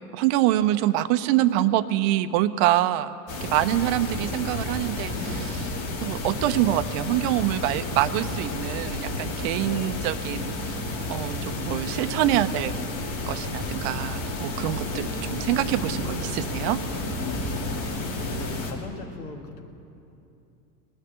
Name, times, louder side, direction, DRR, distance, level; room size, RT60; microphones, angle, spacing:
voice 1, 0.1-5.7 6.0-10.8 11.1-12.7 13.3-16.8, right 14 dB, 45° right, 11 dB, 0.6 m, -25 dB
sound 1, 3.3-18.7, left 2 dB, 40° left, 2.5 m, -31 dB
voice 2, 9.6-10.0 14.8-15.3 18.2-19.7, left 4 dB, 65° left, 4 dB, 1.7 m, -40 dB
18.5 x 6.7 x 10.0 m, 2.7 s
hypercardioid pair, 90°, 47 cm